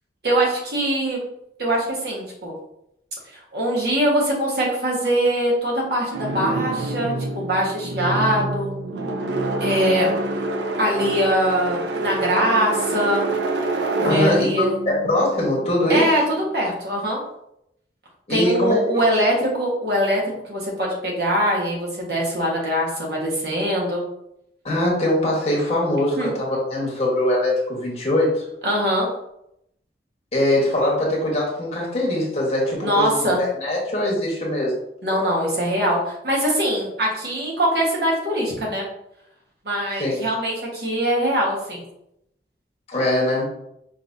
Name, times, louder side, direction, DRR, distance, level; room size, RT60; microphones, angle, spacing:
voice 1, 0.2-1.2 1.6-2.5 3.3-8.8 9.6-10.1 10.8-13.3 14.1-14.7 15.9-17.2 18.3-24.0 26.1-26.3 28.6-29.1 32.8-33.4 35.0-38.9 39.6-41.8, equal, 65° right, -3 dB, 1.4 m, -22 dB
sound 1, 6.1-16.1, right 2 dB, 80° right, 0.6 m, -27 dB
voice 2, 14.0-14.5 14.8-16.1 18.3-19.1 24.6-28.4 30.3-34.7 40.0-40.2 42.9-43.4, left 1 dB, 35° left, -4 dB, 1.4 m, -22 dB
5.4 x 3.5 x 2.7 m, 0.78 s
head